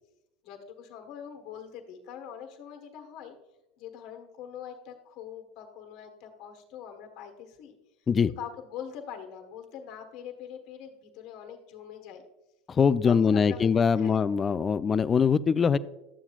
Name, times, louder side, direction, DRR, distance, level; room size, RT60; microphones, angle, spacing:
voice 1, 0.4-3.3 3.8-7.7 8.2-12.2 13.0-14.2, left 8 dB, 60° left, 4 dB, 1.3 m, -43 dB
voice 2, 12.7-15.8, left 6 dB, 25° left, 15 dB, 0.3 m, -23 dB
11.5 x 7.2 x 2.4 m, 0.94 s
hypercardioid pair, 100°, 0 cm